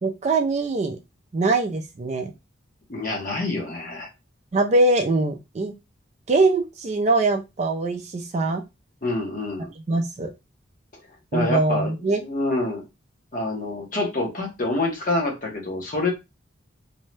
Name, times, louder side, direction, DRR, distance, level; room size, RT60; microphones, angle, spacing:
voice 1, 0.0-1.0 1.3-2.3 4.5-5.7 6.3-8.6 9.9-10.3 11.3-12.2, right 2 dB, 35° right, 0.3 m, -22 dB
voice 2, 2.9-4.1 9.0-9.7 11.3-12.8 13.3-16.1, left 2 dB, 40° left, 0.8 m, -27 dB
2.6 x 2.1 x 3.2 m
head